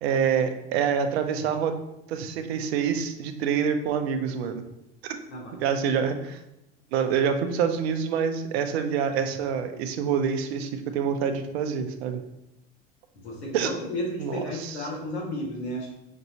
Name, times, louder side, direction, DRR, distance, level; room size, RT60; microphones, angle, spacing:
voice 1, 0.0-1.7 2.1-4.6 5.6-6.4 6.9-12.2 13.5-13.7 14.2-14.9, right 7 dB, 80° right, 7 dB, 0.5 m, -26 dB
voice 2, 5.3-6.1 13.1-15.9, left 1 dB, 85° left, -1 dB, 1.1 m, -33 dB
5.3 x 2.6 x 2.8 m, 0.87 s
hypercardioid pair, 80°, 31 cm